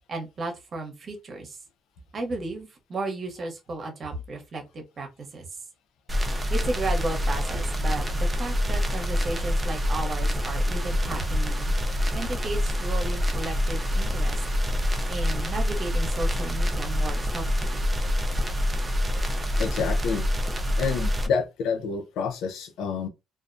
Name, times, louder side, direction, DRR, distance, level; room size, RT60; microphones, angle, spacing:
voice 1, 0.1-1.6 2.1-5.1 5.3-5.5 6.5-11.7 12.1-14.4 15.1-17.8, right 2 dB, 45° right, 0.8 m, -34 dB
sound 1, 6.1-21.3, left 1 dB, 25° right, 0.5 m, -26 dB
voice 2, 19.6-20.3 20.8-23.1, left 5 dB, 90° left, 0.5 m, -28 dB
2.3 x 2.1 x 2.5 m
cardioid pair, 90°, 0 cm